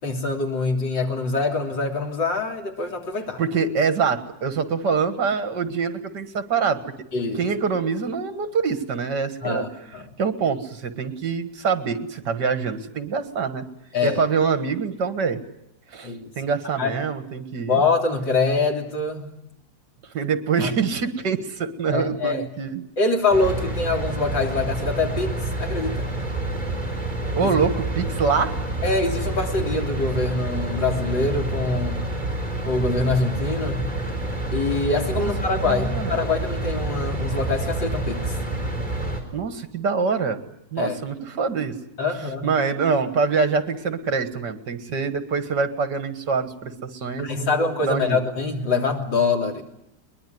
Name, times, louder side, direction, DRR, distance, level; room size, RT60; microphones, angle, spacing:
voice 1, 0.0-3.4 7.1-7.5 9.4-10.0 13.9-14.2 16.0-16.3 16.8-16.9 17.7-19.3 20.6-20.7 21.9-22.5 23.0-26.1 27.4-27.6 28.8-32.0 32.6-33.9 34.5-38.4 40.8-41.0 42.0-42.5 47.2-49.6, left 3 dB, 85° left, 2 dB, 3.9 m, -24 dB
voice 2, 3.4-6.8 7.4-9.6 10.2-13.6 14.0-15.4 15.9-17.8 20.1-22.8 27.3-28.6 35.2-35.3 35.6-36.2 39.3-40.4 40.7-41.7 42.4-48.2, right 5 dB, 70° right, 10 dB, 2.3 m, -25 dB
sound 1, 23.3-39.2, right 2 dB, 25° right, 4.5 m, -28 dB
22.0 x 21.5 x 9.4 m, 0.81 s
omnidirectional pair, 1.9 m